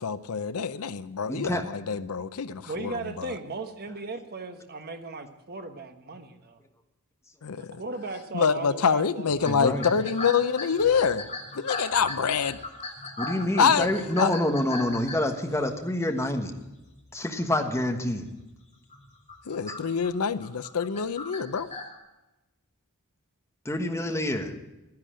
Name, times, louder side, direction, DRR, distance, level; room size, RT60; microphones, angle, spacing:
voice 1, 0.0-3.3 7.4-7.8 8.3-11.2 11.5-12.6 13.6-13.9 14.2-14.3 19.5-21.7, left 6 dB, 75° left, 14 dB, 0.6 m, -26 dB
voice 2, 1.3-1.6 9.4-9.8 13.2-16.6 17.1-18.3 23.6-24.5, left 1 dB, 15° left, 4 dB, 1.3 m, -27 dB
voice 3, 2.7-6.6 7.6-10.1, right 3 dB, 45° right, 7 dB, 1.2 m, -37 dB
sound 1, 9.3-15.9 16.5-16.9 17.2-17.6 18.0-18.1 18.7-22.0, left 3 dB, 30° left, 2.5 m, -38 dB
12.0 x 10.5 x 7.5 m, 1.0 s
head